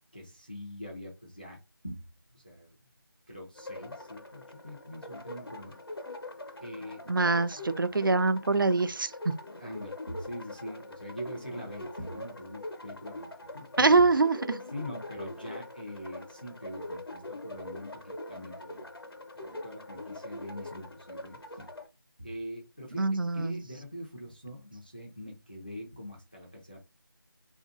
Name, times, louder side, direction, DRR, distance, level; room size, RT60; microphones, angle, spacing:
voice 1, 0.1-1.6 1.8-2.0 2.3-2.8 3.3-5.8 6.6-7.0 9.6-14.0 14.7-17.9 18.3-18.9 19.4-21.7 22.2-23.1 23.3-26.8, equal, 25° left, 0.5 m, -43 dB
sound 1, 3.6-21.9, left 1 dB, 80° left, 0.9 m, -43 dB
voice 2, 7.1-9.3 13.8-14.6 22.9-23.6, right 3 dB, 60° right, 0.4 m, -24 dB
3.9 x 2.5 x 2.5 m
figure-of-eight pair, 175°, 12 cm